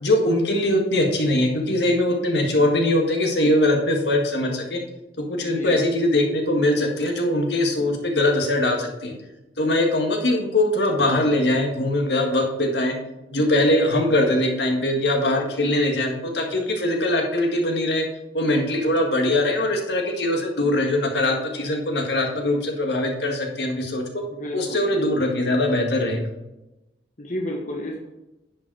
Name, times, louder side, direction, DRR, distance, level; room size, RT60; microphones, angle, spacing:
voice 1, 0.0-4.8 5.2-9.1 9.6-12.9 13.3-18.1 18.3-24.0 24.5-26.2, left 1 dB, 70° left, 2 dB, 1.7 m, -22 dB
voice 2, 5.4-5.8 14.1-14.3 24.3-24.9 27.2-28.1, left 1 dB, 45° left, -1 dB, 1.1 m, -32 dB
10.5 x 5.5 x 4.7 m, 0.97 s
head